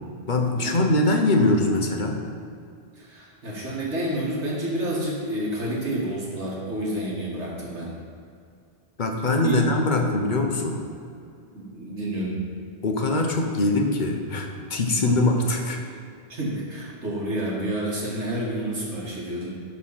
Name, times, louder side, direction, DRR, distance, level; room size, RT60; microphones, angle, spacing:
voice 1, 0.3-2.2 9.0-10.8 12.8-15.8, left 2 dB, 45° left, 2 dB, 1.0 m, -22 dB
voice 2, 2.9-7.9 9.4-9.7 10.2-10.3 11.5-12.4 14.9-15.2 16.3-19.5, right 1 dB, 85° right, -4 dB, 2.2 m, -29 dB
12.5 x 4.2 x 5.7 m, 2.4 s
omnidirectional pair, 1.1 m